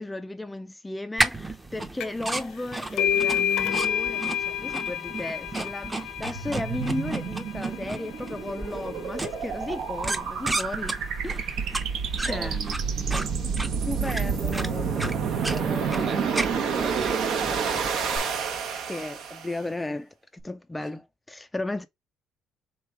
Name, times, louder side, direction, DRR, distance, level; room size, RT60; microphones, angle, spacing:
voice 1, 0.0-11.0 11.2-11.8 12.2-12.6 13.9-15.2 15.5-16.3 18.8-20.1 20.4-21.9, left 2 dB, 10° left, 0.3 m, -35 dB
sound 1, 1.2-18.2, right 2 dB, 15° right, 0.7 m, -34 dB
sound 2, 2.0-2.3 2.6-9.9, left 9 dB, 70° left, 0.5 m, -30 dB
sound 3, 6.2-19.6, right 6 dB, 70° right, 1.0 m, -29 dB
voice 2, 12.3-13.4 15.9-17.9, right 6 dB, 45° right, 1.1 m, -36 dB
3.6 x 3.2 x 4.6 m
cardioid pair, 125°, 0 cm